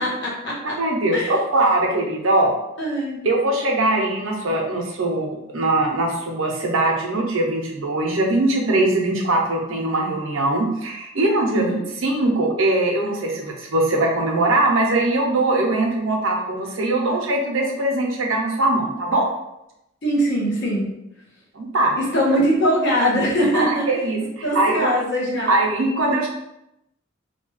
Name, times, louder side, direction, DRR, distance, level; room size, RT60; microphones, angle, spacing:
voice 1, 0.0-0.7 1.1-1.3 2.8-3.2 11.5-11.8 20.0-21.0 22.0-23.9 24.4-25.6, equal, 65° left, -3 dB, 0.9 m, -21 dB
voice 2, 0.8-2.5 3.2-19.3 21.5-22.0 23.5-24.9 25.5-26.3, right 2 dB, 85° right, 0 dB, 0.6 m, -21 dB
2.7 x 2.3 x 3.1 m, 0.86 s
head